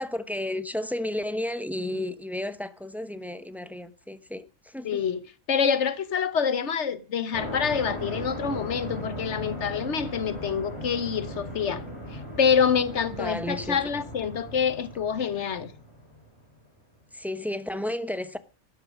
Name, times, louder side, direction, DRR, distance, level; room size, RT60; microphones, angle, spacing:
voice 1, 0.0-5.0 13.1-13.8 17.1-18.4, left 1 dB, ahead, 0.7 m, -32 dB
voice 2, 4.8-5.2 5.5-11.8 12.1-15.7, left 7 dB, 60° left, 1.3 m, -26 dB
sound 1, 7.3-16.4, equal, 20° left, 3.7 m, -38 dB
13.0 x 9.5 x 6.3 m
omnidirectional pair, 1.4 m